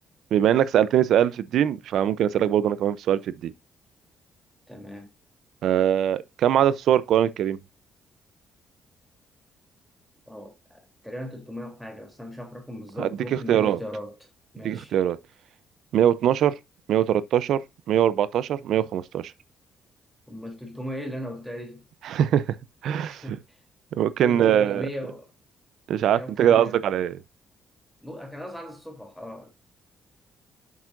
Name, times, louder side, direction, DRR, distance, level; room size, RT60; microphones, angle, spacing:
voice 1, 0.3-3.5 5.6-7.6 13.0-13.8 14.6-15.2 15.9-16.5 16.9-17.6 17.9-19.3 22.0-22.4 22.8-23.2 23.9-24.9 25.9-27.2, right 10 dB, 75° right, 0.6 m, -22 dB
voice 2, 4.7-5.1 10.3-14.9 20.3-21.8 23.0-23.6 24.2-25.3 26.1-26.8 28.0-29.5, equal, ahead, 3.3 m, -38 dB
8.0 x 7.3 x 2.6 m
cardioid pair, 90°, 0 cm